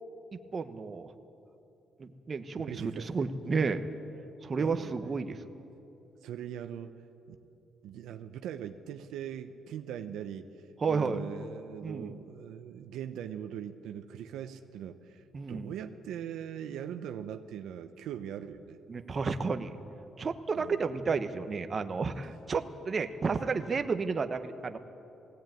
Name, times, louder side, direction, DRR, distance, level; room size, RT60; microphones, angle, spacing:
voice 1, 0.5-1.1 2.0-3.9 4.4-5.4 10.8-11.2 11.8-12.1 15.3-15.7 18.9-19.7 20.2-24.8, right 4 dB, 40° right, 8 dB, 1.2 m, -32 dB
voice 2, 2.6-3.3 4.6-4.9 6.2-6.9 7.3-7.4 7.8-10.5 10.9-18.8 20.5-20.9, right 9 dB, 85° right, 7 dB, 0.8 m, -41 dB
19.5 x 17.0 x 9.2 m, 2.9 s
cardioid pair, 90°, 0 cm